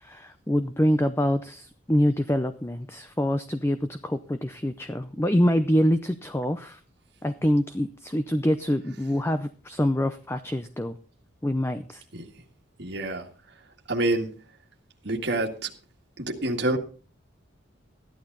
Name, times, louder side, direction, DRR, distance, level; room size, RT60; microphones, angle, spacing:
voice 1, 0.0-6.8 7.2-11.0 11.4-12.0, equal, 10° left, 0.5 m, -25 dB
voice 2, 12.8-13.3 13.9-14.3 15.0-15.7 16.2-16.8, right 2 dB, 55° right, 1.8 m, -27 dB
15.0 x 11.5 x 3.9 m
head